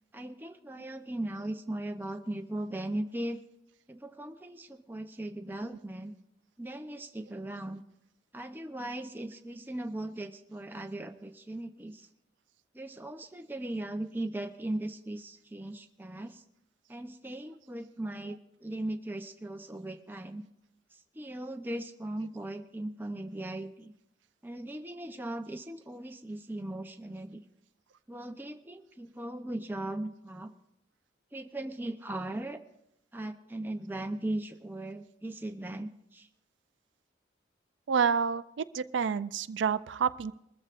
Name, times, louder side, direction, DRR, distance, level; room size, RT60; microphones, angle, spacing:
voice 1, 0.1-3.4 3.9-6.1 6.6-7.8 8.3-12.1 12.7-16.4 16.9-20.4 21.1-23.9 24.4-27.4 28.1-30.5 31.3-32.6 33.1-36.3, right 1 dB, 10° right, 6 dB, 0.6 m, -38 dB
voice 2, 37.9-40.3, right 6 dB, 80° right, 13 dB, 0.4 m, -29 dB
21.5 x 14.0 x 2.5 m, 0.80 s
head